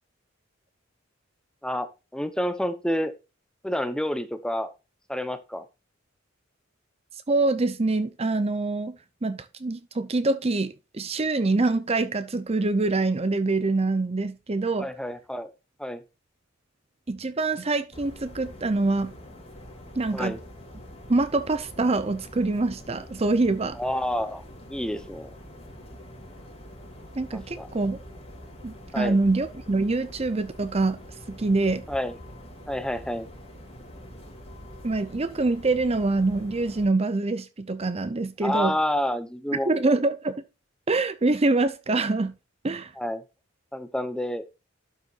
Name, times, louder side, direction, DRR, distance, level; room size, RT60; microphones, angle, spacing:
voice 1, 2.1-3.1 3.6-4.7 5.1-5.7 14.8-15.5 15.8-16.0 20.1-20.4 23.8-25.3 27.3-27.7 28.9-29.2 31.9-32.2 32.7-33.3 38.4-39.9 43.0-43.2 43.7-44.4, left 1 dB, 5° left, 0.9 m, -29 dB
voice 2, 7.3-9.0 9.2-14.9 17.1-19.1 20.0-20.3 21.1-23.8 27.1-28.0 28.6-31.0 31.3-31.8 34.8-38.7 39.7-40.4 40.9-42.3 42.6-42.9, right 3 dB, 30° right, 0.7 m, -25 dB
sound 1, 17.9-36.9, equal, 30° left, 3.9 m, -45 dB
12.0 x 6.8 x 2.5 m
head